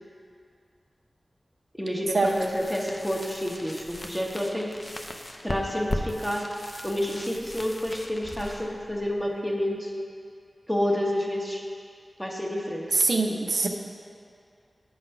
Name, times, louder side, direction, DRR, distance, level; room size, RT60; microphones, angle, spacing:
voice 1, 1.7-4.8 5.4-6.5 6.8-9.9 10.7-11.7 12.2-12.9, equal, 5° left, -1 dB, 0.9 m, -29 dB
sound 1, 2.0-9.8, left 1 dB, 30° left, 0.5 m, -38 dB
voice 2, 12.9-13.7, right 3 dB, 75° right, 2 dB, 0.5 m, -23 dB
8.6 x 3.9 x 5.5 m, 2.3 s
wide cardioid pair, 80°, 0 cm